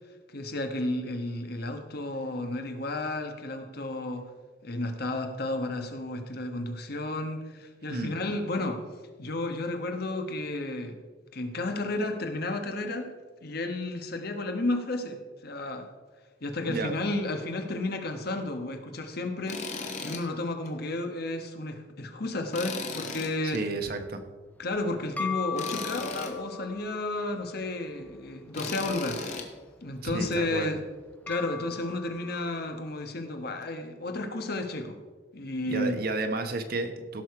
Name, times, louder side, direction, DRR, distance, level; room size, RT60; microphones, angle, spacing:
voice 1, 0.3-4.3 4.6-8.8 9.2-11.0 11.3-13.1 13.4-15.9 16.4-23.6 24.6-29.2 29.8-30.8 31.3-35.0 35.3-36.0, left 2 dB, 60° left, 6 dB, 1.2 m, -32 dB
Tools, 19.5-20.2 20.6-20.7 22.5-23.6 25.6-26.3 28.5-29.5, left 4 dB, 40° left, 1.4 m, -36 dB
voice 2, 23.4-24.2 30.0-30.7 35.7-37.2, right 2 dB, 55° right, 7 dB, 1.1 m, -32 dB
sound 1, 24.5-33.0, left 5 dB, 10° left, 0.5 m, -41 dB
16.5 x 6.5 x 4.7 m, 1.4 s
head